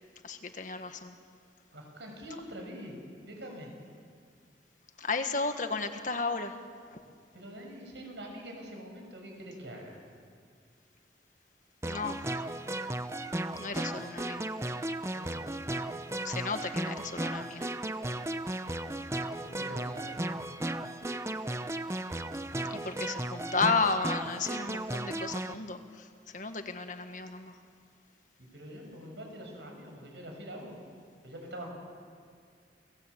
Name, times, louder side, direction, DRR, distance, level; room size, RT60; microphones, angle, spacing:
voice 1, 0.2-1.2 5.0-6.6 6.9-7.0 11.8-12.2 13.5-14.5 16.2-17.7 22.6-27.6, left 4 dB, 45° left, 7 dB, 1.6 m, -33 dB
voice 2, 1.7-2.9 3.3-3.7 7.3-10.0 15.1-15.5 19.4-20.2 28.5-30.7 31.2-31.7, equal, 80° right, 2 dB, 6.7 m, -44 dB
sound 1, 11.8-25.5, right 1 dB, 15° right, 0.8 m, -35 dB
29.5 x 19.0 x 8.3 m, 2.1 s
head